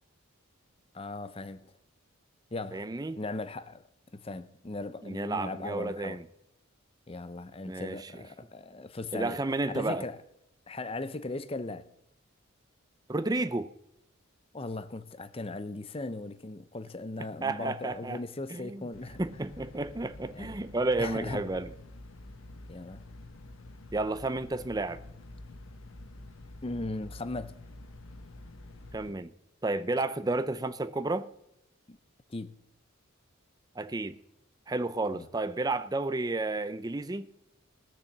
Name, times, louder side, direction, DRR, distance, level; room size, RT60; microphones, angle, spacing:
voice 1, 0.9-1.7 2.5-2.9 3.2-3.8 4.1-6.2 7.1-9.4 9.7-10.2 10.7-11.9 14.5-19.2 20.3-20.5 21.0-21.4 22.7-23.0 26.6-27.6 31.9-32.0 32.3-32.6 35.1-35.3, left 2 dB, 25° left, 0.6 m, -38 dB
voice 2, 2.7-3.2 5.0-6.2 7.7-8.0 9.1-10.0 13.1-13.7 17.4-18.2 18.5-18.8 19.2-21.7 23.9-25.0 28.9-29.3 29.6-31.3 33.8-34.2 34.7-37.3, right 2 dB, 20° right, 0.5 m, -31 dB
sound 1, 18.9-29.1, left 2 dB, 65° left, 1.3 m, -48 dB
18.5 x 6.7 x 7.3 m
head